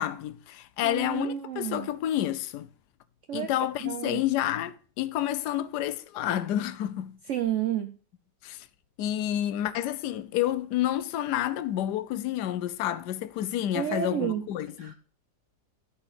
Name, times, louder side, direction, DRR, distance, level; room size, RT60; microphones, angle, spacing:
voice 1, 0.0-2.7 3.3-7.2 8.4-8.7 9.0-14.9, left 12 dB, 70° left, 1.1 m, -29 dB
voice 2, 0.8-1.9 3.3-3.5 3.8-4.2 7.3-7.9 13.7-14.4 14.8-14.9, right 10 dB, 85° right, 0.6 m, -30 dB
11.5 x 4.4 x 5.7 m
omnidirectional pair, 2.0 m